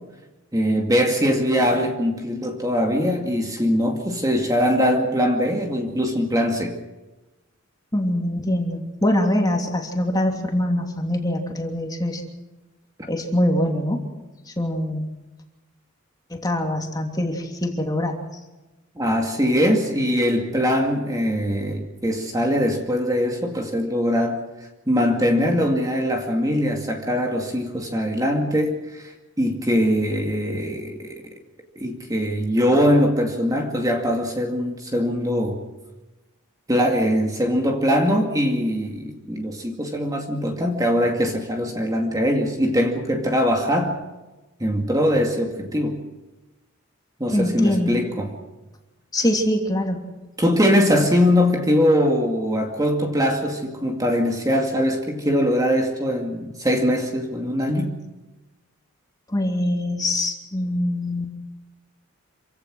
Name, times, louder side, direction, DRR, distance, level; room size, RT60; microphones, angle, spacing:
voice 1, 0.5-6.8 19.0-24.4 24.9-31.2 31.8-35.6 36.7-44.0 44.6-46.0 47.2-48.3 50.4-58.0, equal, 15° right, 2 dB, 2.3 m, -22 dB
voice 2, 7.9-12.2 13.1-14.0 14.6-15.1 16.3-18.2 47.3-48.0 49.1-50.0 59.3-61.3, left 1 dB, 20° left, 2 dB, 2.9 m, -23 dB
27.0 x 16.5 x 6.3 m, 1.1 s
head